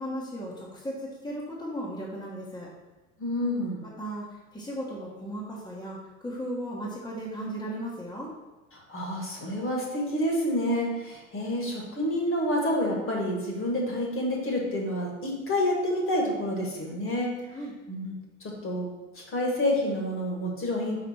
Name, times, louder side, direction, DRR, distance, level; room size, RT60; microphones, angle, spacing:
voice 1, 0.0-2.7 3.8-8.3 17.5-17.7, equal, 10° left, -5 dB, 1.3 m, -36 dB
voice 2, 3.2-3.8 8.7-17.3 17.9-18.1 18.4-18.9 19.1-21.0, left 1 dB, 30° left, 0 dB, 1.7 m, -28 dB
5.0 x 4.8 x 4.3 m, 1.2 s
figure-of-eight pair, 75°, 42 cm